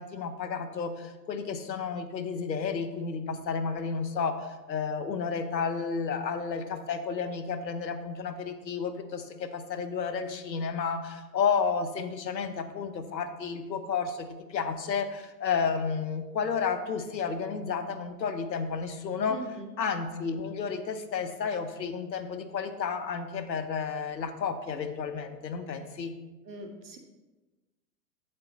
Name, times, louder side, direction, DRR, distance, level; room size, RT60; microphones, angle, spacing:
voice 1, 0.0-26.1, left 5 dB, 85° left, 9 dB, 0.9 m, -32 dB
voice 2, 19.3-19.7 26.4-27.0, right 4 dB, 75° right, 3 dB, 1.7 m, -41 dB
8.3 x 7.6 x 3.1 m, 1.2 s
hypercardioid pair, 105°, 50 cm